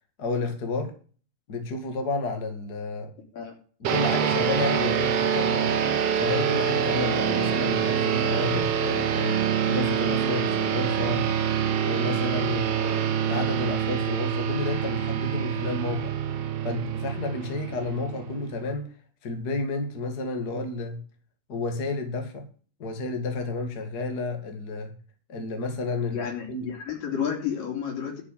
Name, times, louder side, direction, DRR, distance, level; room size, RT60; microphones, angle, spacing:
voice 1, 0.2-0.9 1.5-3.1 3.8-5.8 6.1-11.2 11.8-16.1 16.6-18.9 19.2-21.0 21.5-22.5 22.8-24.9 25.3-26.7, left 3 dB, 35° left, 5 dB, 2.2 m, -31 dB
sound 1, 3.8-18.7, right 8 dB, 60° right, 1.8 m, -26 dB
voice 2, 26.1-28.2, left 8 dB, 85° left, 1 dB, 5.2 m, -31 dB
12.0 x 6.4 x 7.3 m, 0.40 s
omnidirectional pair, 3.8 m